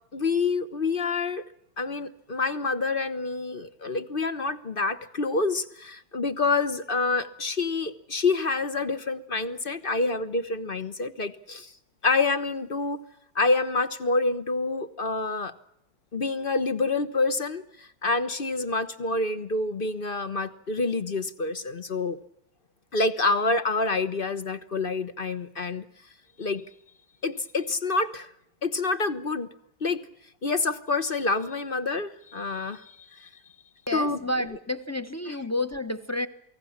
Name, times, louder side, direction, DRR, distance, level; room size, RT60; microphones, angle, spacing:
voice 1, 0.1-1.4 1.8-11.7 12.0-13.0 13.3-15.5 16.1-22.2 22.9-25.9 26.4-26.6 27.2-28.3 28.6-29.5 29.8-30.1 30.4-33.3 33.9-34.6 35.3-35.4, left 3 dB, 35° left, 13 dB, 1.1 m, -27 dB
voice 2, 33.9-36.3, left 1 dB, 10° left, 11 dB, 0.9 m, -30 dB
28.5 x 19.5 x 7.3 m, 0.78 s
omnidirectional pair, 1.8 m